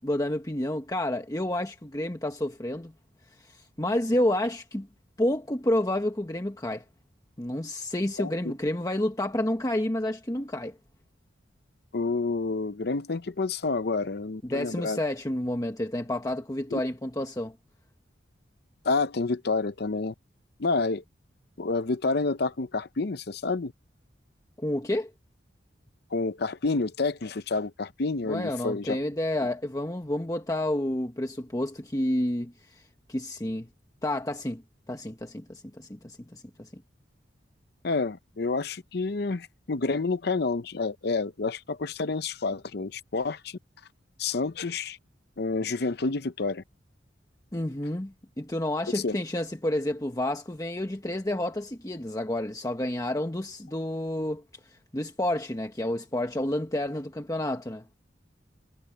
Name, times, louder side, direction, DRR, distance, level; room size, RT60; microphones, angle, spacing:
voice 1, 0.0-2.9 3.4-4.9 5.2-6.8 7.4-10.8 14.4-17.5 24.6-25.1 28.3-32.8 33.1-33.7 34.0-34.6 34.9-36.8 47.5-54.4 54.7-57.9, left 1 dB, 20° left, 1.1 m, -30 dB
voice 2, 8.2-8.6 11.9-15.0 16.7-16.8 18.8-20.1 20.6-21.0 21.6-23.7 26.1-29.0 37.8-43.6 44.2-45.0 45.4-46.6 48.9-49.2, left 3 dB, 60° left, 0.7 m, -29 dB
head